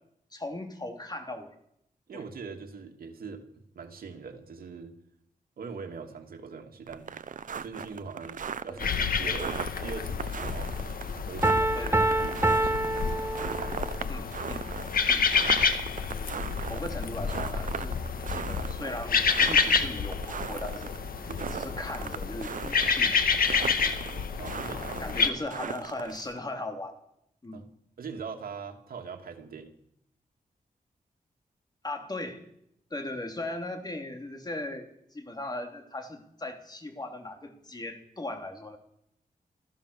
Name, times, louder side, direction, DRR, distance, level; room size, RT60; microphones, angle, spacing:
voice 1, 0.3-1.5 2.1-2.2 8.7-8.9 11.7-12.2 14.1-14.7 15.1-15.6 16.7-18.0 18.3-23.2 25.0-27.0 27.4-27.6 31.8-32.4 32.9-38.8, left 2 dB, 25° left, 4 dB, 3.3 m, -38 dB
voice 2, 2.1-3.4 3.7-4.9 5.6-7.2 7.6-10.7 11.2-13.0 13.4-13.9 21.3-21.8 23.9-25.4 26.0-26.2 27.5-27.7 28.0-29.7, right 5 dB, 85° right, 4 dB, 2.7 m, -42 dB
sound 1, 6.9-26.4, right 7 dB, 65° right, 0.8 m, -38 dB
sound 2, 8.8-25.3, left 5 dB, 75° left, 1.7 m, -29 dB
Piano, 11.4-14.0, right 2 dB, 15° right, 1.2 m, -26 dB
26.5 x 15.0 x 6.9 m, 0.76 s
wide cardioid pair, 105°, 15 cm